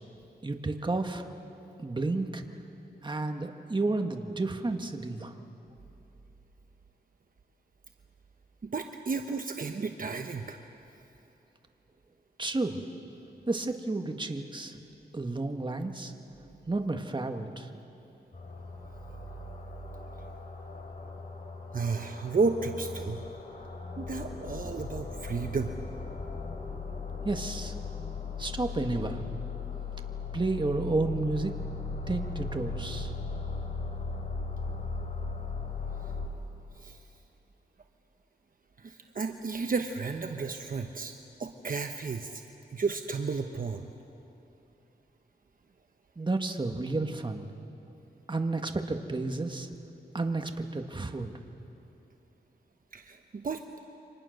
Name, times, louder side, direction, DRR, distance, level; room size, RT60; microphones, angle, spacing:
voice 1, 0.4-1.3 1.8-2.4 3.0-5.3 12.4-12.8 13.5-14.7 15.1-16.1 16.7-17.7 27.2-27.7 28.4-29.2 30.3-31.5 32.1-33.1 46.2-47.4 48.3-49.7 50.1-51.3, right 2 dB, 25° right, 5 dB, 1.7 m, -31 dB
voice 2, 8.6-10.6 20.2-20.3 21.7-23.2 24.0-25.7 36.7-37.0 38.8-41.1 41.4-42.4 42.7-43.9 52.9-53.6, right 4 dB, 55° right, 5 dB, 1.0 m, -32 dB
sound 1, 18.3-36.3, left 4 dB, 45° left, 3.7 m, -38 dB
29.5 x 25.0 x 6.6 m, 3.0 s
wide cardioid pair, 100°, 17 cm